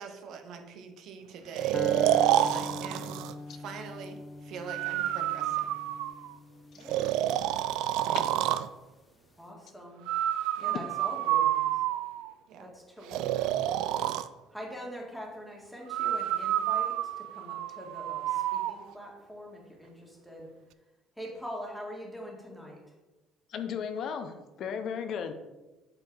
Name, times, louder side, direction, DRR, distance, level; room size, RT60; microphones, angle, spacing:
voice 1, 0.0-1.8 2.2-3.2 3.5-5.7 8.1-8.3 10.6-10.7 12.5-12.7, right 5 dB, 65° right, 5 dB, 1.0 m, -44 dB
Breathing, 1.5-3.3 4.7-6.3 6.9-8.7 10.1-12.3 13.1-14.3 15.9-18.7, right 12 dB, 80° right, 0.3 m, -28 dB
sound 1, 1.7-8.1, left 2 dB, 20° left, 0.3 m, -42 dB
voice 2, 6.7-7.4 9.4-10.1 10.6-11.8 12.6-13.6 14.5-20.9 21.1-23.0, equal, ahead, -2 dB, 1.9 m, -44 dB
voice 3, 23.5-25.3, left 7 dB, 55° left, 8 dB, 0.8 m, -35 dB
7.6 x 4.3 x 4.7 m, 1.1 s
cardioid pair, 130°, 0 cm